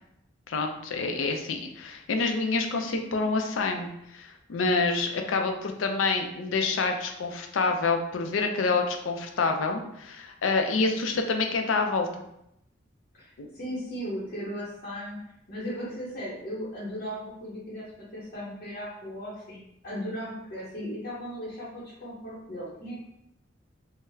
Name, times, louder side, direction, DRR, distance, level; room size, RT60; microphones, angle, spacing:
voice 1, 0.5-12.1 13.4-13.5, left 3 dB, 85° left, 4 dB, 0.4 m, -27 dB
voice 2, 13.5-15.2 15.5-17.9 18.1-23.0, equal, 45° left, -8 dB, 0.7 m, -36 dB
3.8 x 2.0 x 2.6 m, 0.80 s
head